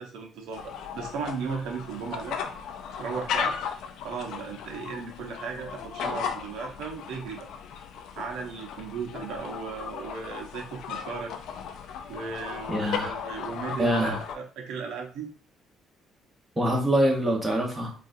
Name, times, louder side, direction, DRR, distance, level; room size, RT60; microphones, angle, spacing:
voice 1, 0.0-2.4 3.0-3.5 4.0-7.5 8.2-11.3 12.1-15.3, right 5 dB, 85° right, 2 dB, 0.7 m, -36 dB
sound 1, 0.5-14.4, left 7 dB, 75° left, 0.4 m, -36 dB
voice 2, 12.7-13.1 13.7-14.2 16.6-17.9, equal, 10° right, -1 dB, 1.0 m, -25 dB
4.0 x 2.4 x 2.6 m, 0.39 s
cardioid pair, 125°, 0 cm